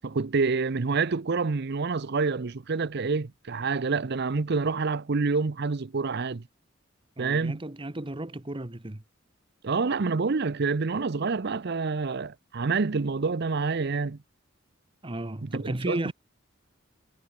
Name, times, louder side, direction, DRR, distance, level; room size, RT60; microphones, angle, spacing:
voice 1, 0.0-6.4 7.2-7.6 9.6-14.2 15.4-16.1, right 4 dB, 55° right, 0.7 m, -27 dB
voice 2, 7.2-9.0 15.0-16.1, right 1 dB, 25° right, 1.2 m, -34 dB
head